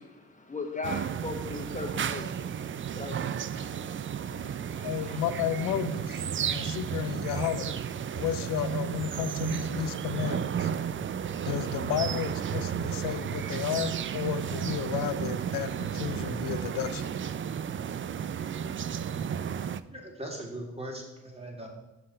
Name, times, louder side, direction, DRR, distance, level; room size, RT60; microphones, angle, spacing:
voice 1, 0.0-5.2, left 3 dB, 25° left, 2 dB, 1.3 m, -40 dB
sound 1, 0.8-19.8, right 8 dB, 40° right, 0.4 m, -33 dB
voice 2, 4.8-7.8 8.1-10.7 11.4-17.1, left 11 dB, 85° left, 13 dB, 0.5 m, -33 dB
voice 3, 19.9-21.7, right 1 dB, 20° right, 0 dB, 2.3 m, -39 dB
6.6 x 5.6 x 4.3 m, 1.0 s
supercardioid pair, 45°, 33 cm